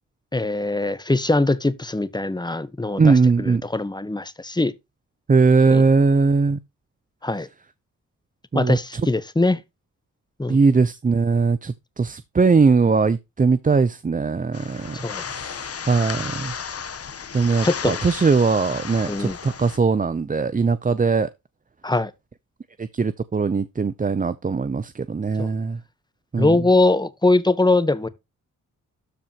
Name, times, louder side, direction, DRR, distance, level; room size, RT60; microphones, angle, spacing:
voice 1, 0.3-4.7 5.7-5.8 7.2-7.5 8.5-9.6 10.4-10.6 14.9-15.2 17.6-18.1 19.1-19.4 21.8-22.1 25.4-25.5 26.4-28.1, left 2 dB, 15° left, 1.2 m, -22 dB
voice 2, 3.0-3.6 5.3-6.6 8.5-8.8 10.5-15.0 15.3-16.5 17.3-21.3 22.8-25.8 26.3-26.6, right 4 dB, 25° right, 0.7 m, -20 dB
sound 1, 14.5-19.8, left 6 dB, 45° left, 1.2 m, -33 dB
13.0 x 5.0 x 3.0 m
cardioid pair, 90°, 32 cm